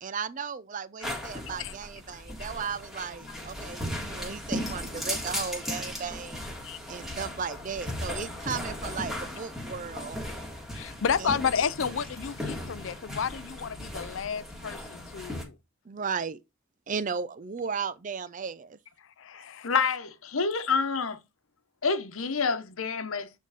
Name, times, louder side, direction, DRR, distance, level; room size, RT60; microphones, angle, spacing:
voice 1, 0.0-6.4 6.9-10.2 11.2-11.4 15.9-16.4 16.9-18.8 19.3-19.4, right 6 dB, 40° right, 0.5 m, -35 dB
sound 1, 1.0-15.4, left 1 dB, ahead, 1.7 m, -37 dB
voice 2, 10.7-15.6 19.2-19.7 20.5-20.7, left 7 dB, 65° left, 0.5 m, -31 dB
voice 3, 19.6-21.2 21.8-23.4, left 5 dB, 85° left, 1.0 m, -28 dB
8.3 x 3.8 x 4.1 m
head